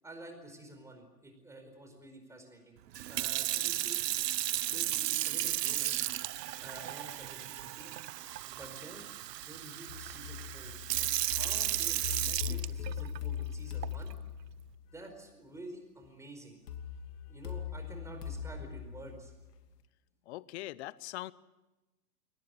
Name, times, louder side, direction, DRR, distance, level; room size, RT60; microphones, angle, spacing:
voice 1, 0.0-2.8 3.1-4.1 4.6-6.0 6.6-7.9 8.4-14.1 14.9-16.6 17.3-19.3, right 1 dB, 5° right, 4 dB, 4.7 m, -50 dB
Sink (filling or washing) / Fill (with liquid), 2.9-13.2 13.8-14.1, right 13 dB, 75° right, 0.8 m, -34 dB
sound 1, 9.9-14.9 16.7-19.7, left 8 dB, 65° left, 2.8 m, -40 dB
voice 2, 20.3-21.3, left 17 dB, 40° left, 20 dB, 0.8 m, -41 dB
22.5 x 19.0 x 9.2 m, 1.1 s
hypercardioid pair, 130°, 49 cm